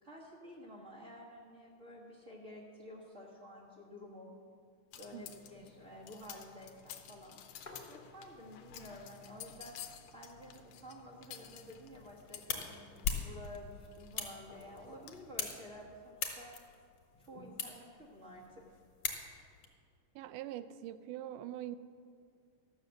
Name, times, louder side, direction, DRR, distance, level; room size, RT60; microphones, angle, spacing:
voice 1, 0.0-4.3 5.0-7.4 7.9-9.7 10.1-16.5 17.2-18.6, left 1 dB, 65° right, -7 dB, 0.7 m, -51 dB
sound 1, 4.9-15.3, left 9 dB, 75° left, 1.7 m, -53 dB
sound 2, 7.7-8.6 9.0-9.1 9.3-10.1 10.5-10.6 11.1-11.9 12.6-13.3 14.5-15.1 16.2-16.7, left 2 dB, 20° left, 1.2 m, -57 dB
sound 3, 11.8-19.7, left 6 dB, 55° left, 2.0 m, -42 dB
voice 2, 20.2-21.8, right 12 dB, 80° right, 13 dB, 2.0 m, -43 dB
13.0 x 6.5 x 8.0 m, 2.2 s
omnidirectional pair, 3.7 m